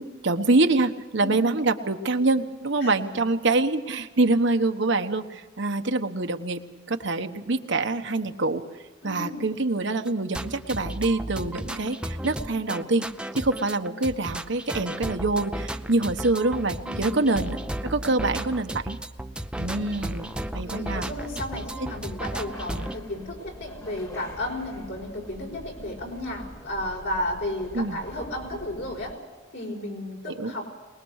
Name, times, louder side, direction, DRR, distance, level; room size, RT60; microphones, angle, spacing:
voice 1, 0.0-6.6 6.9-8.6 9.0-13.0 13.3-17.6 17.8-19.0 19.6-21.1 27.7-28.0 30.4-30.5, right 2 dB, 65° right, 7 dB, 1.2 m, -25 dB
voice 2, 9.0-9.5 16.8-17.4 20.6-29.2 29.5-30.7, left 1 dB, 65° left, 1 dB, 5.4 m, -33 dB
sound 1, 10.0-23.0, right 1 dB, 5° right, 0.6 m, -34 dB
sound 2, 19.5-29.1, equal, 20° left, 1.7 m, -44 dB
22.5 x 20.5 x 6.5 m, 1.3 s
head